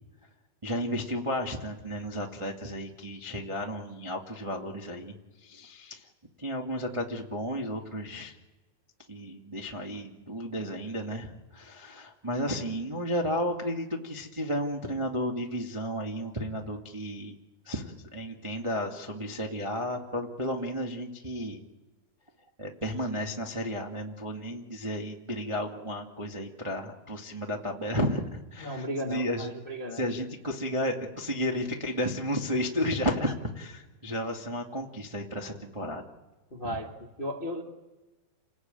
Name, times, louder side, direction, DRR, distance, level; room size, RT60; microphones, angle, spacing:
voice 1, 0.6-5.1 5.4-6.1 6.4-8.3 9.1-17.4 17.6-21.6 22.6-29.5 29.9-36.0 36.6-36.8, equal, 45° right, 0 dB, 0.4 m, -33 dB
voice 2, 28.6-30.0 36.5-36.9 37.2-37.6, equal, 40° left, 2 dB, 0.7 m, -35 dB
29.0 x 19.5 x 9.0 m, 1.2 s
omnidirectional pair, 4.7 m